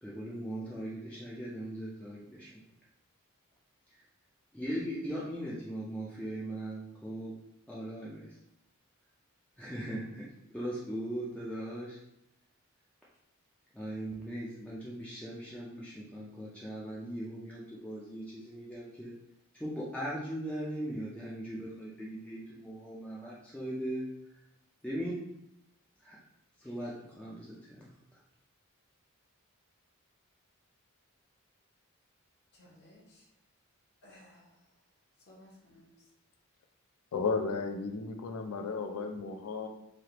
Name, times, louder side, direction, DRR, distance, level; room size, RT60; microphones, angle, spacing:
voice 1, 0.0-2.5 4.5-7.3 7.7-8.4 9.6-10.3 10.5-12.0 13.7-19.1 19.5-24.1 24.8-25.1 26.0-26.2 26.6-28.2, right 1 dB, 5° left, -7 dB, 0.4 m, -39 dB
voice 2, 32.5-33.3 34.0-34.6 35.2-36.1, left 1 dB, 50° left, -4 dB, 0.9 m, -58 dB
voice 3, 37.1-39.7, left 4 dB, 80° left, 5 dB, 0.4 m, -34 dB
3.2 x 2.4 x 2.9 m, 0.80 s
head